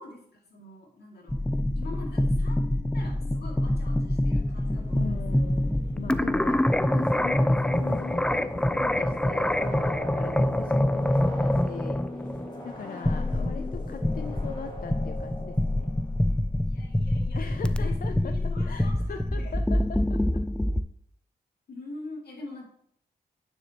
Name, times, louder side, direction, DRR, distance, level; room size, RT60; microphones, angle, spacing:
voice 1, 0.0-1.4 1.7-2.6 2.9-5.5 6.6-6.8 12.8-13.0 14.2-14.5 16.6-19.7 21.7-22.7, left 2 dB, 80° left, -1 dB, 2.3 m, -44 dB
sound 1, 1.3-20.8, left 1 dB, 5° left, 0.4 m, -26 dB
sound 2, 2.9-16.3, left 1 dB, 25° left, 1.9 m, -40 dB
voice 2, 4.9-15.9 17.4-18.3 18.6-20.4, left 7 dB, 60° left, 8 dB, 0.5 m, -41 dB
9.1 x 7.1 x 2.9 m, 0.68 s
cardioid pair, 80°, 16 cm